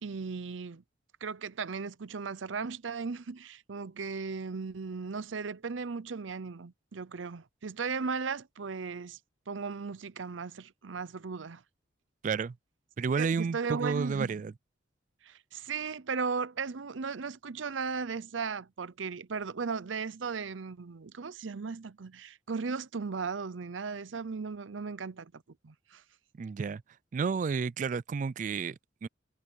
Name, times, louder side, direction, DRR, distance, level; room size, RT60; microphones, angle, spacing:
voice 1, 0.0-0.8 1.2-9.2 9.5-11.6 13.2-14.4 15.2-25.3 25.6-26.0, right 5 dB, 90° right, 0.7 m, -36 dB
voice 2, 12.2-12.6 13.0-14.5 26.4-26.8 27.1-29.1, right 5 dB, 40° right, 0.3 m, -31 dB
head